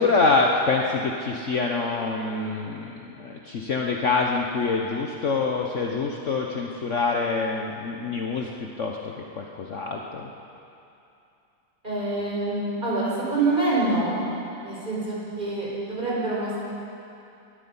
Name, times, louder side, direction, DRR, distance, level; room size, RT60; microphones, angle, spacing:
voice 1, 0.0-10.3, left 4 dB, 50° left, 0 dB, 1.2 m, -26 dB
voice 2, 11.8-14.2 14.6-16.6, right 2 dB, 25° right, -7 dB, 5.0 m, -26 dB
21.0 x 12.0 x 5.6 m, 2.7 s
omnidirectional pair, 1.8 m